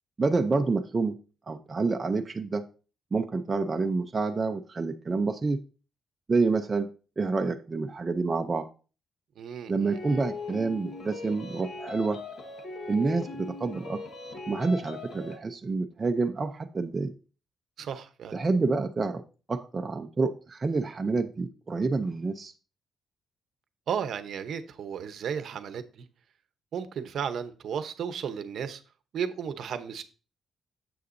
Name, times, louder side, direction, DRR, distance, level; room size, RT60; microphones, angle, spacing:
voice 1, 0.2-1.1 1.5-2.6 3.1-5.6 6.3-6.9 7.2-8.7 9.7-12.2 12.9-14.0 14.5-17.1 18.3-19.2 19.5-22.5, right 3 dB, 20° right, 0.6 m, -28 dB
voice 2, 9.4-10.2 17.8-18.4 23.9-26.1 26.7-28.8 29.1-30.0, right 7 dB, 55° right, 0.8 m, -34 dB
sound 1, 9.9-15.4, left 3 dB, 50° left, 1.4 m, -39 dB
9.7 x 7.8 x 2.6 m
cardioid pair, 160°, 0 cm